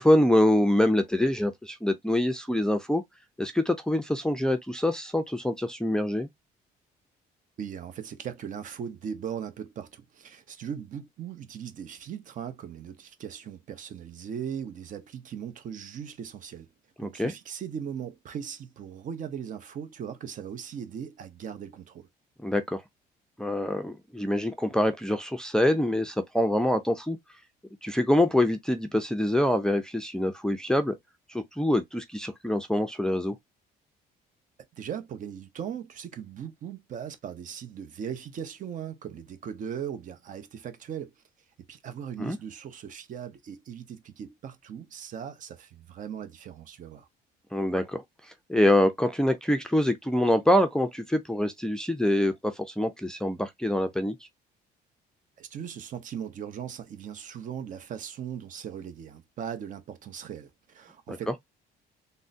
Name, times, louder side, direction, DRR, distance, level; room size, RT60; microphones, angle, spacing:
voice 1, 0.0-3.0 3.4-6.3 17.0-17.3 22.4-22.8 23.4-27.2 27.8-31.0 31.3-33.4 42.2-42.4 47.5-48.0 48.5-54.1 61.1-61.2, left 1 dB, 5° left, 0.4 m, -25 dB
voice 2, 7.6-16.7 17.0-22.1 34.7-41.1 41.7-47.1 55.4-61.4, right 8 dB, 50° right, 0.7 m, -38 dB
3.6 x 2.1 x 2.6 m
cardioid pair, 110°, 17 cm